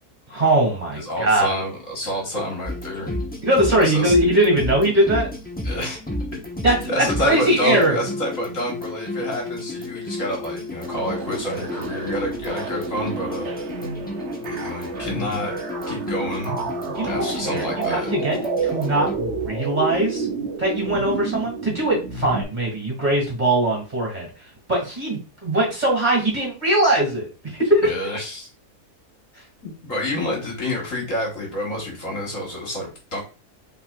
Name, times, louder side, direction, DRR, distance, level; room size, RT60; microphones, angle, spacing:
voice 1, 0.3-1.5 3.4-5.3 6.6-8.0 16.9-18.4 18.6-20.3 20.6-24.3 24.7-27.9, right 1 dB, 30° right, -2 dB, 2.2 m, -21 dB
voice 2, 1.0-3.2 3.8-4.2 5.6-6.0 6.9-13.5 14.4-15.5 15.9-16.5 17.1-18.1 27.8-28.5 29.6-33.2, left 1 dB, 55° left, -2 dB, 1.9 m, -28 dB
sound 1, 2.6-19.2, left 2 dB, 10° left, 0.5 m, -32 dB
sound 2, 10.8-22.4, right 5 dB, 55° right, 1.0 m, -30 dB
5.8 x 3.6 x 2.4 m, 0.32 s
omnidirectional pair, 1.7 m